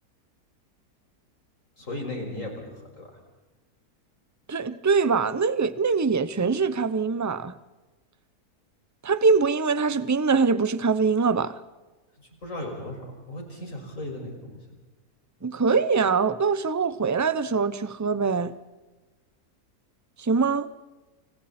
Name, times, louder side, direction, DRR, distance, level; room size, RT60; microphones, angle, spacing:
voice 1, 1.8-3.1 12.4-14.6, left 1 dB, 55° left, 6.2 m, -36 dB
voice 2, 4.5-7.5 9.0-11.6 15.4-18.5 20.2-20.7, right 5 dB, 15° right, 0.6 m, -23 dB
29.5 x 26.0 x 4.4 m
omnidirectional pair, 1.7 m